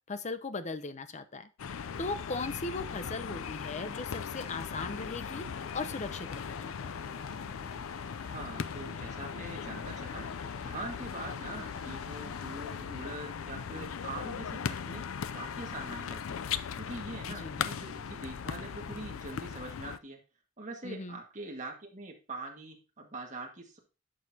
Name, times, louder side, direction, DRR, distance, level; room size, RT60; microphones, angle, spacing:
voice 1, 0.1-6.7 17.4-17.6 20.8-21.2, left 3 dB, 35° left, 12 dB, 0.6 m, -38 dB
sound 1, 1.6-20.0, left 7 dB, 85° left, 0.5 m, -38 dB
sound 2, 4.8-14.8, left 3 dB, 60° left, 3.4 m, -53 dB
voice 2, 8.2-10.3 10.6-15.0 15.3-20.2 20.6-23.8, right 2 dB, 35° right, 1 dB, 1.8 m, -43 dB
11.0 x 6.3 x 2.8 m, 0.32 s
head